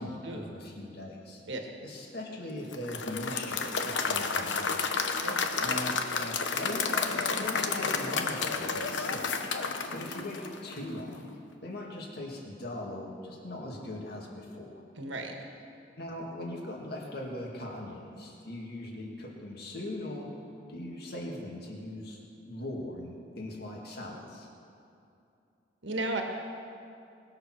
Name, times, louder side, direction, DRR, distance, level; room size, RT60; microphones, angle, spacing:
voice 1, 0.0-1.4 1.8-4.8 5.6-9.3 9.9-11.2 11.6-14.8 16.0-20.3 20.7-22.2 22.5-24.5, left 1 dB, 60° left, -1 dB, 2.1 m, -40 dB
Applause / Crowd, 2.7-10.9, left 5 dB, 80° left, 0.9 m, -31 dB
voice 2, 15.0-15.3 25.8-26.2, right 2 dB, 80° right, 3 dB, 1.4 m, -34 dB
19.5 x 6.8 x 6.2 m, 2.7 s
head